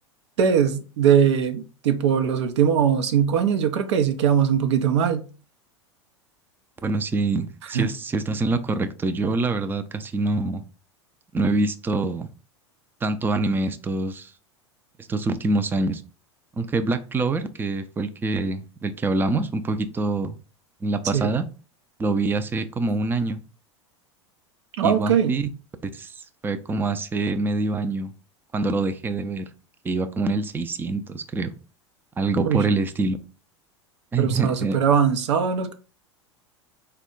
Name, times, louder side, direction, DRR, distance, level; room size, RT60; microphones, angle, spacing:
voice 1, 0.4-5.2 7.7-7.9 21.1-21.3 24.8-25.3 32.4-32.6 34.2-35.7, right 8 dB, 70° right, 0.6 m, -21 dB
voice 2, 6.8-10.6 11.3-12.3 13.0-14.3 15.1-16.0 16.6-20.4 20.8-21.5 22.0-23.4 24.8-25.5 25.9-26.1 26.4-28.1 28.5-29.4 29.8-31.5 32.2-33.2 34.1-34.8, right 3 dB, 15° right, 0.4 m, -25 dB
4.1 x 2.3 x 3.7 m
hypercardioid pair, 90°, 15 cm